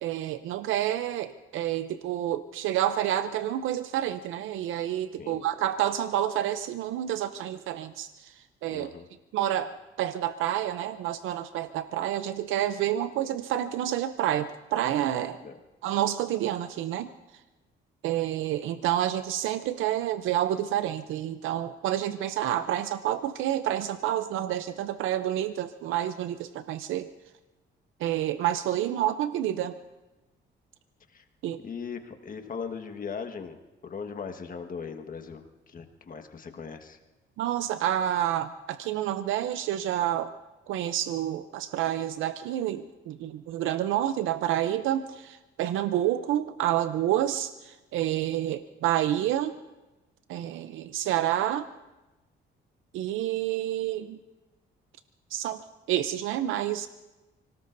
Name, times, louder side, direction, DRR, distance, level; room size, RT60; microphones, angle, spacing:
voice 1, 0.0-8.9 9.3-15.4 15.8-17.1 18.0-27.1 28.0-29.8 31.4-31.6 37.4-40.3 40.7-49.5 50.3-51.7 52.9-54.2 55.3-55.6 55.9-56.9, right 12 dB, 85° right, 12 dB, 0.6 m, -29 dB
voice 2, 8.7-9.1 15.3-15.5 31.1-31.2 31.6-33.6 33.8-37.0, left 6 dB, 45° left, 6 dB, 1.5 m, -39 dB
29.5 x 18.5 x 2.6 m, 1.1 s
cardioid pair, 90°, 20 cm